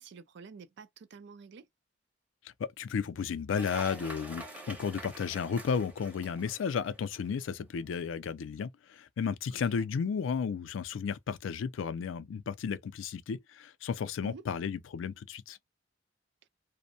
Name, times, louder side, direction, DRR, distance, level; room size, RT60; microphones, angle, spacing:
voice 1, 0.0-1.7 9.7-9.9 14.2-14.4, right 5 dB, 65° right, 0.4 m, -49 dB
voice 2, 2.6-15.6, left 6 dB, 80° left, 0.4 m, -33 dB
Cheering / Applause, 3.6-7.3, right 1 dB, 10° right, 0.7 m, -46 dB
2.5 x 2.1 x 2.6 m
head